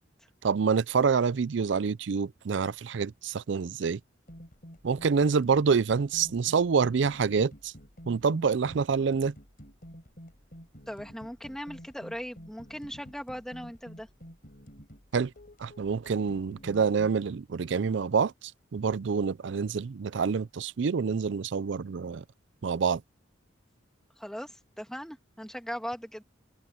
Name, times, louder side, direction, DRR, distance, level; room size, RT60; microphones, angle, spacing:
voice 1, 0.4-4.0 4.8-7.7 8.1-9.3 15.1-15.3 15.6-22.2 22.6-23.0, right 5 dB, 65° right, 0.4 m, -27 dB
sound 1, 4.3-17.2, equal, 45° left, 4.7 m, -50 dB
voice 2, 10.9-14.1 24.2-26.2, equal, 5° left, 2.5 m, -39 dB
head